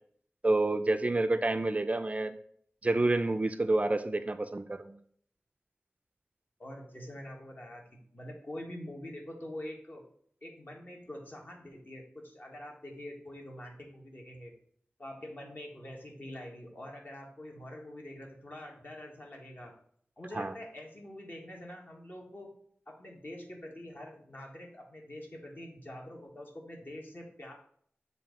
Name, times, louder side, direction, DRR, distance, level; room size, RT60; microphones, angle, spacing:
voice 1, 0.4-2.4 2.8-5.0 20.3-20.5, right 2 dB, 35° right, 10 dB, 0.4 m, -28 dB
voice 2, 6.6-10.0 10.4-14.5 15.0-19.7 20.2-22.5 22.9-27.5, left 1 dB, 50° left, 0 dB, 1.5 m, -45 dB
7.1 x 2.8 x 5.2 m, 0.62 s
wide cardioid pair, 75°, 4 cm